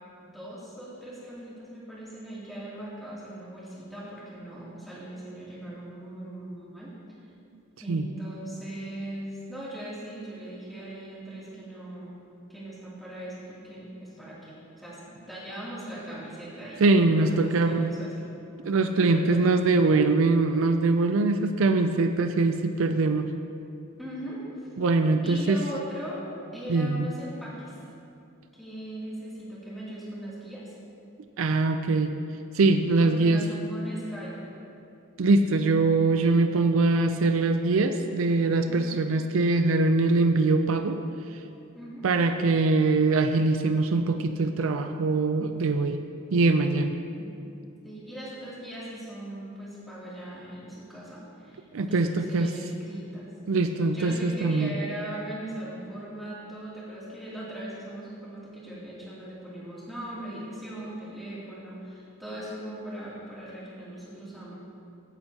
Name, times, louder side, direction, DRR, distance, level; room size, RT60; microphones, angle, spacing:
voice 1, 0.2-6.9 7.8-12.1 12.5-18.3 19.0-19.5 24.0-24.7 25.2-26.3 26.5-27.7 28.6-30.7 33.0-34.5 38.7-39.0 41.7-42.1 47.2-47.3 47.8-53.3 53.9-64.5, right 1 dB, ahead, -9 dB, 2.7 m, -39 dB
voice 2, 16.8-17.9 18.7-23.3 24.8-25.6 26.7-27.1 31.4-32.1 32.5-33.4 35.2-41.0 42.0-46.0 46.3-46.9 51.7-52.5 53.5-54.7, right 3 dB, 70° right, 8 dB, 0.5 m, -23 dB
15.5 x 8.8 x 2.9 m, 2.6 s
head